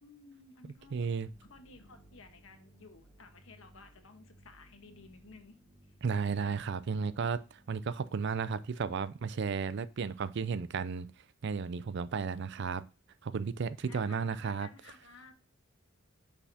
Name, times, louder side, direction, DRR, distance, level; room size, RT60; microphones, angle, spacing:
voice 1, 0.0-1.1 1.4-5.6 13.9-15.3, left 4 dB, 80° left, 1.2 m, -55 dB
sound 1, 0.8-8.5, right 1 dB, 25° right, 1.1 m, -62 dB
voice 2, 0.9-1.3 6.0-11.1 11.4-12.8 13.2-14.7, right 5 dB, 55° right, 0.4 m, -33 dB
6.3 x 5.7 x 2.8 m
head